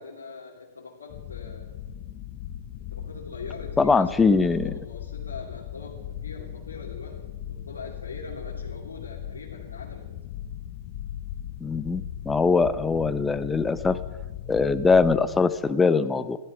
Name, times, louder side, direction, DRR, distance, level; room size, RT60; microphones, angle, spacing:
voice 1, 0.0-1.8 2.9-10.1, left 4 dB, 90° left, -4 dB, 2.7 m, -42 dB
sound 1, 1.1-15.4, left 10 dB, 45° left, 1.1 m, -38 dB
voice 2, 3.8-4.7 11.6-14.0 14.5-16.4, left 4 dB, 10° left, 14 dB, 0.7 m, -22 dB
15.0 x 13.0 x 6.1 m, 1.2 s
hypercardioid pair, 115°, 0 cm